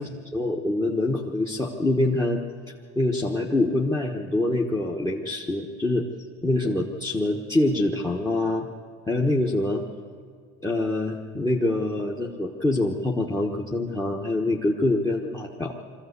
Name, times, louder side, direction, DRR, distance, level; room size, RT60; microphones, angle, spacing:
voice 1, 0.0-6.1 6.4-8.7 9.1-9.8 10.6-15.7, left 2 dB, 10° left, 2 dB, 1.3 m, -25 dB
22.5 x 14.5 x 8.2 m, 2.2 s
supercardioid pair, 120°, 35 cm